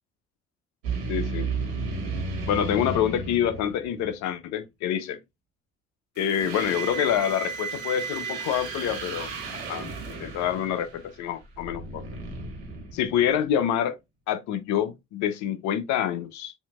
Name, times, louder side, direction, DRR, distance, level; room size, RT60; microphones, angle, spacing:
sound 1, 0.8-4.1 6.2-13.5, right 4 dB, 85° right, 1.7 m, -34 dB
voice 1, 1.1-1.5 2.4-5.2 6.2-9.3 9.7-12.0 12.9-14.0 14.3-16.5, left 9 dB, 65° left, 0.8 m, -27 dB
7.1 x 2.8 x 2.3 m
hypercardioid pair, 55°, 31 cm